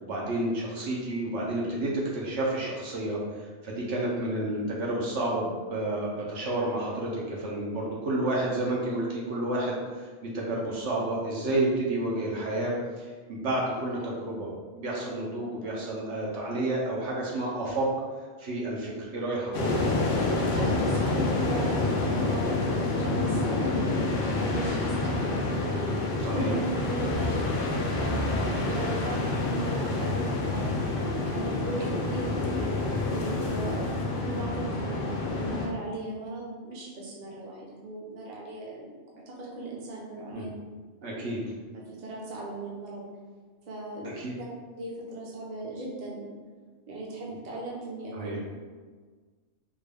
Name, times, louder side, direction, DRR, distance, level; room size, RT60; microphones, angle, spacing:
voice 1, 0.0-3.2 3.6-14.5 14.7-17.9 18.4-20.1 26.2-26.5 31.9-32.0 40.3-40.5 41.0-41.4 44.1-44.3 48.1-48.4, right 1 dB, 65° right, -4 dB, 0.9 m, -30 dB
sound 1, 19.5-35.7, left 2 dB, 60° left, 0.6 m, -28 dB
voice 2, 20.5-23.8 24.4-25.9 26.3-26.6 26.9-27.4 27.7-32.3 33.1-38.9 39.3-40.5 41.0-41.2 41.7-43.0 43.7-44.1 44.4-44.5 44.8-46.3 46.9-48.3, right 2 dB, 40° right, -4 dB, 0.7 m, -37 dB
3.6 x 2.2 x 3.3 m, 1.5 s
omnidirectional pair, 1.3 m